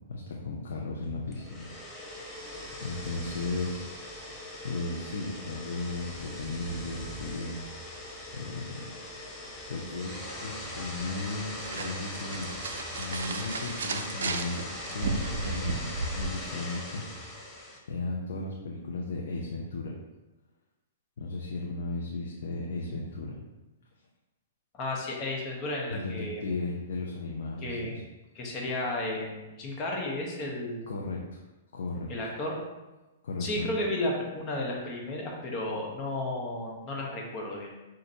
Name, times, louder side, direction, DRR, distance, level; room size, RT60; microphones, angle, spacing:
voice 1, 0.1-1.7 2.8-3.9 4.6-7.6 8.3-8.8 9.7-10.1 10.4-12.5 13.0-20.0 21.2-23.4 25.9-28.0 30.9-31.4 31.7-32.1 33.2-33.7, left 3 dB, 70° left, -2 dB, 0.6 m, -35 dB
sound 1, 1.2-17.8, left 1 dB, 10° left, 0.8 m, -40 dB
sound 2, 11.2-16.3, right 3 dB, 70° right, 0.4 m, -34 dB
voice 2, 24.7-26.4 27.6-28.0 28.3-30.9 32.1-32.6 33.4-37.7, left 1 dB, 35° left, -1 dB, 1.1 m, -33 dB
5.9 x 2.5 x 2.8 m, 1.1 s
hypercardioid pair, 120°, 0 cm